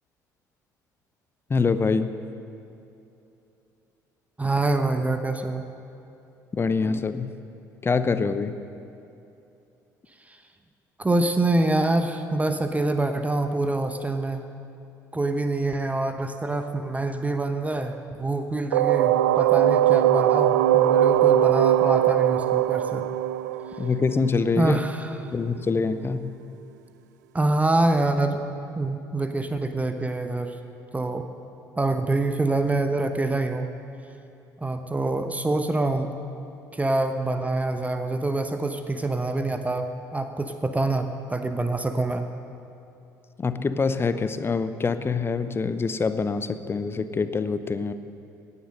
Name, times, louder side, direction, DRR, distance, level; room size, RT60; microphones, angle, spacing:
voice 1, 1.5-2.1 6.5-7.3 7.8-8.6 23.8-24.8 25.3-26.3 43.4-47.9, left 4 dB, 25° left, 12 dB, 0.8 m, -25 dB
voice 2, 4.4-5.6 10.3-10.4 11.0-14.4 15.1-23.1 24.6-25.3 27.3-28.4 28.8-30.6 30.9-31.3 31.8-33.7 34.6-36.1 36.7-42.3, right 2 dB, 15° right, 7 dB, 1.0 m, -25 dB
sound 1, 18.7-24.4, right 12 dB, 70° right, 0.4 m, -20 dB
18.0 x 9.8 x 6.5 m, 2.8 s
figure-of-eight pair, 55°, 10 cm